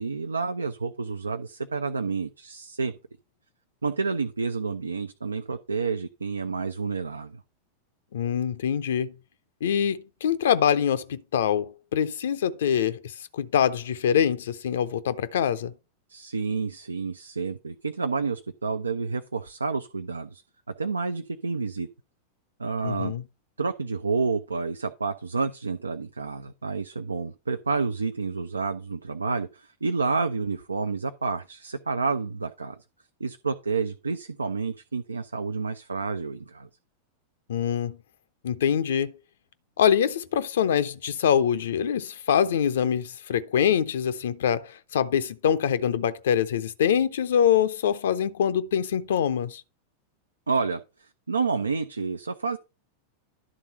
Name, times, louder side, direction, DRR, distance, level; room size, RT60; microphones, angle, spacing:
voice 1, 0.0-2.9 3.8-7.4 16.1-20.4 20.7-21.9 22.6-23.1 23.6-32.8 33.2-36.7 50.5-52.6, right 4 dB, 75° right, 0.5 m, -29 dB
voice 2, 8.1-9.1 9.6-15.7 22.8-23.2 37.5-38.0 38.4-39.1 39.8-49.6, left 8 dB, 60° left, 0.5 m, -24 dB
11.0 x 3.7 x 5.5 m
figure-of-eight pair, 90°, 0 cm